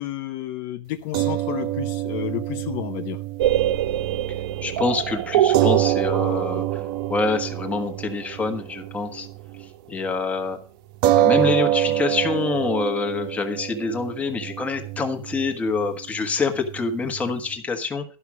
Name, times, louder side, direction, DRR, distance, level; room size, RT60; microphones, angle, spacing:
voice 1, 0.0-3.2, left 14 dB, 45° left, 7 dB, 0.7 m, -31 dB
sound 1, 1.1-9.7 10.0-10.1 11.0-17.6, right 13 dB, 30° right, 0.5 m, -27 dB
sound 2, 3.4-9.2, right 12 dB, 70° right, 0.7 m, -25 dB
voice 2, 4.6-6.8 7.1-9.3 9.6-10.6 11.2-18.0, left 4 dB, 10° left, 4 dB, 1.4 m, -26 dB
12.5 x 5.8 x 6.0 m, 0.37 s
supercardioid pair, 160°, 14 cm